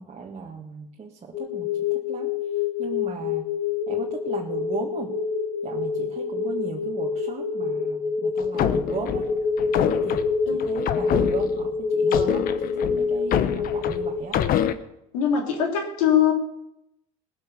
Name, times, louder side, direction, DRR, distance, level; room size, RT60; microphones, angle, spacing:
voice 1, 0.0-2.3 2.8-3.4 3.9-5.2 5.6-9.3 9.8-10.2 10.5-14.4, right 5 dB, 40° right, 0 dB, 1.9 m, -37 dB
sound 1, 1.3-14.2, left 5 dB, 35° left, 1.7 m, -26 dB
sound 2, 8.4-11.7 12.1-14.7, left 10 dB, 55° left, 1.0 m, -26 dB
voice 2, 15.1-16.3, left 8 dB, 85° left, 3 dB, 3.0 m, -21 dB
18.5 x 7.2 x 6.8 m, 0.81 s
hypercardioid pair, 75°, 17 cm